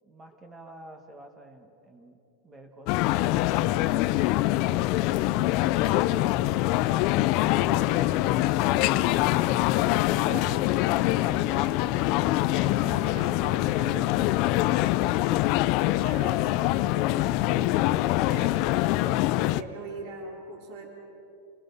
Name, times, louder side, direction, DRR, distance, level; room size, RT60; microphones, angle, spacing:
voice 1, 0.0-2.2 2.4-4.7 8.7-10.5 11.3-11.5 15.2-16.0, right 2 dB, 15° right, 5 dB, 1.8 m, -49 dB
sound 1, 2.9-19.6, left 16 dB, 45° left, 0.5 m, -24 dB
voice 2, 5.7-6.4 6.6-7.0 7.6-8.2 10.2-10.8 11.4-12.1 12.4-14.4 16.0-20.9, right 4 dB, 45° right, 0 dB, 3.4 m, -43 dB
28.0 x 21.0 x 5.6 m, 2.9 s
supercardioid pair, 155°, 0 cm